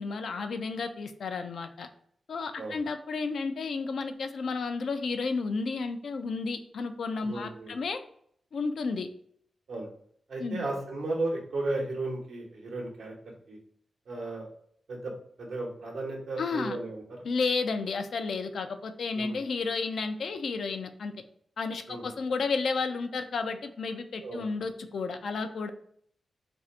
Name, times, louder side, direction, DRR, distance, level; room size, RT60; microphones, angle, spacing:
voice 1, 0.0-1.9 2.3-8.0 8.5-9.1 10.4-10.7 16.4-16.8 17.2-21.1 21.6-25.7, left 4 dB, 75° left, 7 dB, 0.4 m, -32 dB
voice 2, 7.3-7.8 9.7-9.9 10.3-13.1 13.5-13.6 14.1-14.5 14.9-15.1 15.4-17.2 19.1-19.4 21.9-22.0 24.2-24.5, right 2 dB, 80° right, -1 dB, 0.9 m, -34 dB
2.6 x 2.4 x 4.2 m, 0.66 s
cardioid pair, 70°, 0 cm